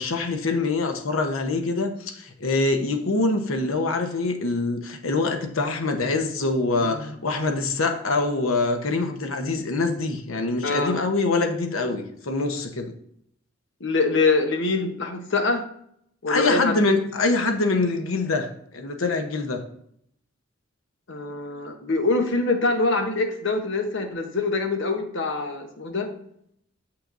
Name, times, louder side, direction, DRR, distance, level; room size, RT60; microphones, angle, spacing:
voice 1, 0.0-12.9 16.3-19.6, left 3 dB, 90° left, 5 dB, 0.9 m, -24 dB
voice 2, 10.6-11.0 13.8-15.6 16.2-16.8 21.1-26.1, left 3 dB, 65° left, 4 dB, 1.0 m, -24 dB
7.4 x 5.7 x 2.6 m, 0.69 s
head